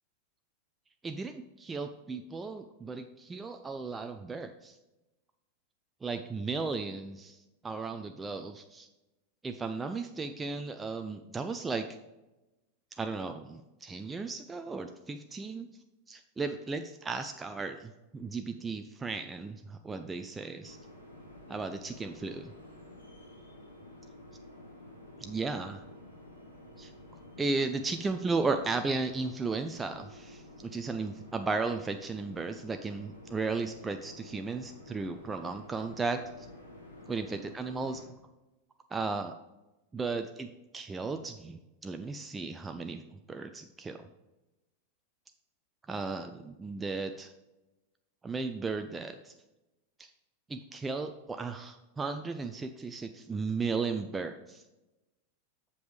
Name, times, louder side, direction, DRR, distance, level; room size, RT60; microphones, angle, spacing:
voice 1, 1.0-4.8 6.0-7.4 7.6-8.9 9.4-11.9 13.0-15.7 16.1-20.8 21.5-22.5 25.2-25.8 26.8-26.9 27.4-36.5 37.1-38.0 38.9-39.3 39.9-43.0 43.3-44.1 45.9-47.3 48.2-49.3 50.0-50.1 50.5-54.6, right 4 dB, 15° right, 7 dB, 0.4 m, -35 dB
sound 1, 20.6-38.1, left 1 dB, 80° left, 1.8 m, -51 dB
7.7 x 6.9 x 3.3 m, 1.0 s
figure-of-eight pair, 90°, 0 cm